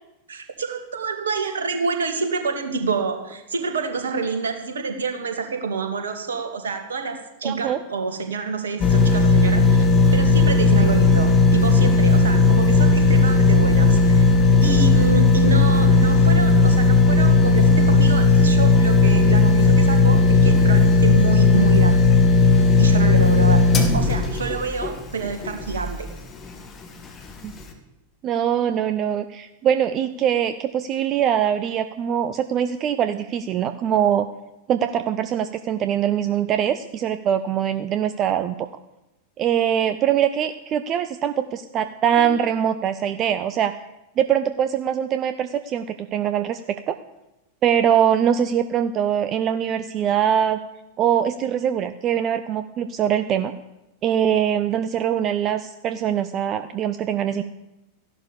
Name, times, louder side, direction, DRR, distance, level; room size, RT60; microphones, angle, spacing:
voice 1, 0.3-9.8 10.1-14.3 14.6-22.0 22.8-23.6 23.9-26.1 42.2-42.3, right 4 dB, 65° right, 5 dB, 2.3 m, -28 dB
voice 2, 7.4-7.8 27.4-27.5 28.2-34.3 34.7-38.7 39.4-43.7 44.2-47.0 47.6-50.6 51.0-53.5 54.0-57.4, right 9 dB, 30° right, 10 dB, 0.7 m, -22 dB
sound 1, 8.8-26.0 26.5-26.6, left 3 dB, 25° left, 2.3 m, -16 dB
14.5 x 11.5 x 7.0 m, 0.96 s
figure-of-eight pair, 90°, 0 cm